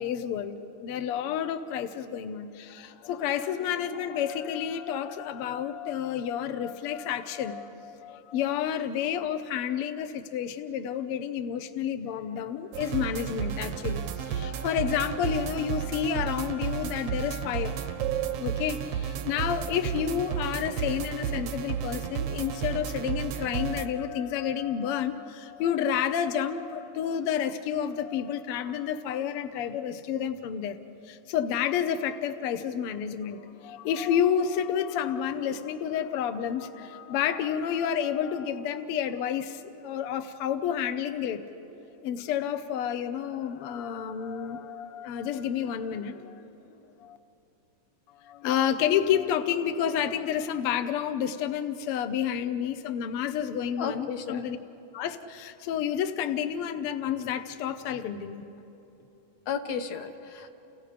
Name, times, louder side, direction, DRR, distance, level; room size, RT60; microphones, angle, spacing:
voice 1, 0.0-30.8 31.1-41.4 42.0-46.7 47.0-47.2 48.2-54.6 54.9-58.4, left 9 dB, 80° left, 8 dB, 1.3 m, -30 dB
sound 1, 12.7-23.9, right 9 dB, 75° right, 1.4 m, -32 dB
voice 2, 53.8-54.4 59.5-60.5, left 6 dB, 65° left, 8 dB, 2.0 m, -33 dB
30.0 x 29.0 x 5.1 m, 3.0 s
omnidirectional pair, 3.7 m